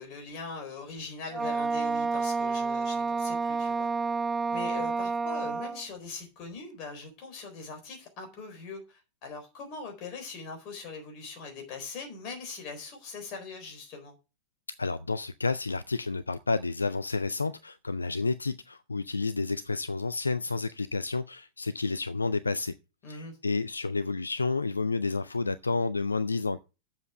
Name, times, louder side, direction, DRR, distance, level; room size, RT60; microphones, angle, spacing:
voice 1, 0.0-3.9 4.5-14.2 23.0-23.4, left 4 dB, 40° left, 4.2 m, -41 dB
Wind instrument woodwind instrument, 1.3-5.8, right 4 dB, 15° right, 0.4 m, -29 dB
voice 2, 14.8-22.7 23.1-26.6, left 3 dB, 80° left, 0.4 m, -30 dB
7.9 x 7.3 x 6.1 m
figure-of-eight pair, 90°, 0 cm